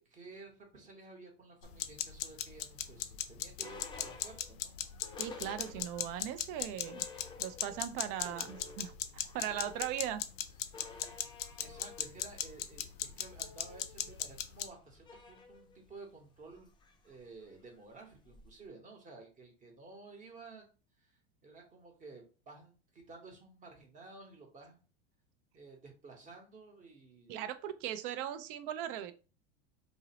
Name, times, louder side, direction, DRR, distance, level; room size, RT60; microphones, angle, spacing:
voice 1, 0.0-4.7 7.9-8.4 11.6-16.7 17.0-20.6 21.0-21.1 21.4-24.8 25.5-27.5, right 3 dB, 25° right, 2 dB, 0.9 m, -53 dB
sound 1, 1.6-14.7, left 11 dB, 70° left, 0.5 m, -38 dB
sound 2, 2.6-6.2 6.5-6.6 6.8-7.9 8.2-18.7, left 4 dB, 15° left, 0.5 m, -53 dB
voice 2, 5.2-7.1 7.4-10.2 27.3-29.1, right 10 dB, 60° right, 12 dB, 0.4 m, -39 dB
2.7 x 2.0 x 2.8 m, 0.35 s
hypercardioid pair, 100°, 32 cm